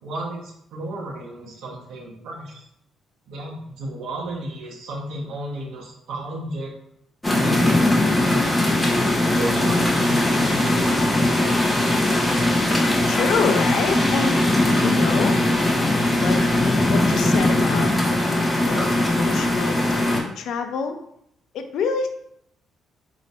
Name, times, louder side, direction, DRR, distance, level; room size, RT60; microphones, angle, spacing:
voice 1, 0.0-2.6 3.3-6.7 7.3-8.6 9.2-11.7, right 1 dB, 80° right, -3 dB, 1.2 m, -33 dB
sound 1, 7.2-20.2, left 1 dB, 15° left, 0.8 m, -20 dB
voice 2, 13.1-14.4 14.8-15.4 16.2-16.4 16.9-17.9 18.6-21.0 21.5-22.1, left 5 dB, 75° left, 7 dB, 0.5 m, -26 dB
3.1 x 2.7 x 4.2 m, 0.74 s
cardioid pair, 90°, 0 cm